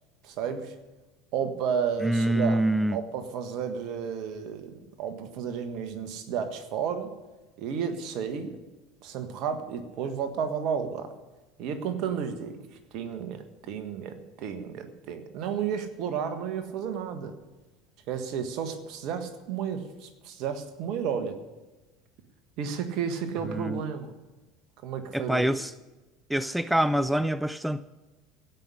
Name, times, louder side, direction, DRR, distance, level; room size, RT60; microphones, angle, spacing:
voice 1, 0.2-0.7 1.3-2.6 2.9-7.1 7.6-8.6 9.0-11.1 11.6-12.6 12.9-17.3 18.1-21.4 22.6-24.1 24.8-25.5, right 7 dB, 55° right, 8 dB, 1.5 m, -32 dB
voice 2, 2.0-3.0 23.5-23.8 25.1-25.7 26.3-27.8, right 1 dB, 5° right, 15 dB, 0.4 m, -25 dB
16.5 x 5.8 x 9.8 m, 1.1 s
hypercardioid pair, 70°, 0 cm